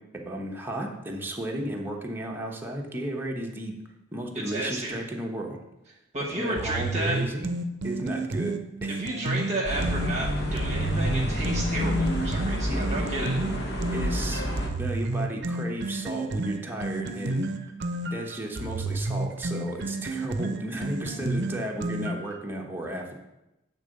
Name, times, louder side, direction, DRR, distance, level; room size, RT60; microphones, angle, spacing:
voice 1, 0.1-3.8 4.1-5.6 6.3-7.5 7.8-9.0 12.6-13.0 13.9-14.5 14.8-17.5 18.1-23.2, right 1 dB, 10° right, 0 dB, 1.0 m, -34 dB
voice 2, 4.3-5.0 6.1-7.2 8.9-13.4, right 1 dB, 35° right, -2 dB, 1.1 m, -32 dB
sound 1, 6.6-10.1 10.6-14.1 14.6-22.4, right 2 dB, 55° right, 0.6 m, -31 dB
sound 2, 9.6-14.7, equal, 55° left, 1.3 m, -28 dB
8.3 x 3.8 x 6.4 m, 0.94 s
head